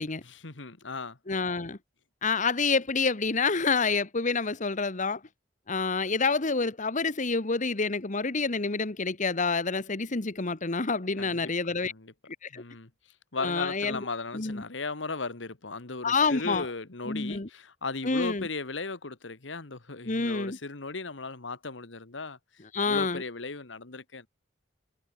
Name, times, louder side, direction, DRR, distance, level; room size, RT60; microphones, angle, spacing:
voice 1, 0.2-1.2 11.2-11.5 11.9-12.1 12.5-12.9 13.3-22.4 22.9-24.3, left 3 dB, 85° left, 1.7 m, -36 dB
voice 2, 1.3-1.8 2.2-5.2 5.7-11.9 12.4-12.6 13.4-14.1 14.3-14.6 16.0-16.7 17.1-17.5 18.0-18.5 20.0-20.6 22.7-23.2, left 4 dB, 45° left, 1.4 m, -28 dB
head